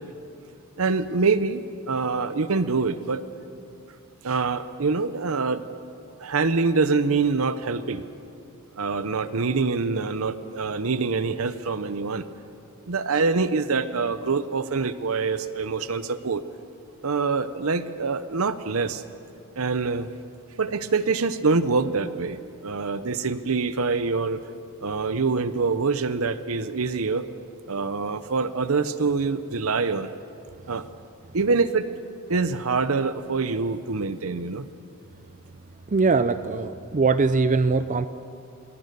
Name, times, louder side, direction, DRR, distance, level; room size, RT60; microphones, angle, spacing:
voice 1, 0.8-3.2 4.2-5.7 6.2-8.0 8.8-12.2 12.9-16.4 17.0-19.0 19.6-20.1 20.6-24.4 24.8-27.2 27.7-30.1 30.7-30.9 31.3-31.9 32.3-34.7, right 4 dB, 65° right, 13 dB, 0.8 m, -25 dB
voice 2, 35.9-38.1, right 4 dB, 35° right, 12 dB, 0.5 m, -21 dB
26.5 x 21.5 x 6.8 m, 2.6 s
head